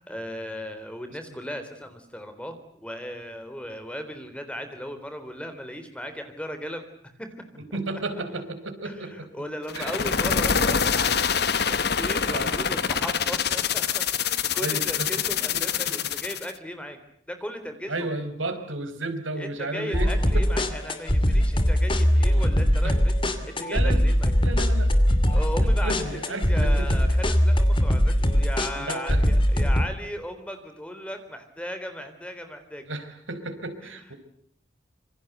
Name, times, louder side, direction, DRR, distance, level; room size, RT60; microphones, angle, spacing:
voice 1, 0.0-6.8 7.2-7.3 8.8-17.0 17.3-18.1 19.3-23.1 23.4-24.3 25.3-32.9 33.8-34.0, equal, 5° left, 8 dB, 3.6 m, -37 dB
voice 2, 7.7-9.3 9.7-9.9 12.3-12.5 14.6-15.1 15.5-15.6 15.9-16.1 17.9-20.5 22.3-22.4 22.8-22.9 23.6-24.0 24.4-25.3 25.8-26.9 28.7-29.2 32.9-34.1, right 2 dB, 85° right, 8 dB, 5.0 m, -33 dB
sound 1, 9.7-16.5, left 7 dB, 55° left, 1.2 m, -25 dB
sound 2, 19.9-29.9, equal, 25° left, 2.6 m, -21 dB
27.0 x 25.5 x 8.1 m, 0.66 s
head